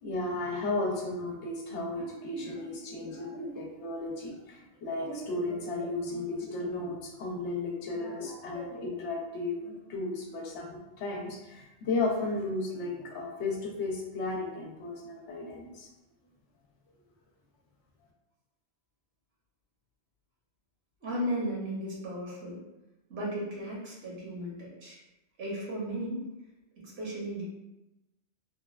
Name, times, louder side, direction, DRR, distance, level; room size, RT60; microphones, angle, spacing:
voice 1, 0.0-15.9, left 2 dB, 80° left, 0 dB, 0.9 m, -34 dB
voice 2, 21.0-22.6 23.1-25.0 25.4-26.3 26.8-27.4, equal, 65° right, -6 dB, 1.1 m, -35 dB
2.9 x 2.2 x 2.3 m, 0.99 s
omnidirectional pair, 1.2 m